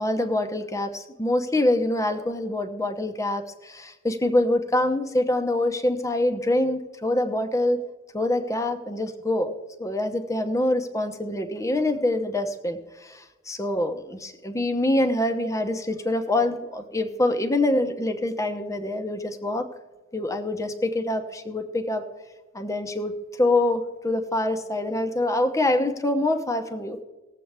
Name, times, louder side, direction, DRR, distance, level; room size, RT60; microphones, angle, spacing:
voice 1, 0.0-7.8 8.1-9.5 9.8-19.7 20.1-22.0 22.5-23.1 23.4-27.0, left 1 dB, 15° left, 6 dB, 0.8 m, -25 dB
19.5 x 7.6 x 3.4 m, 1.2 s
head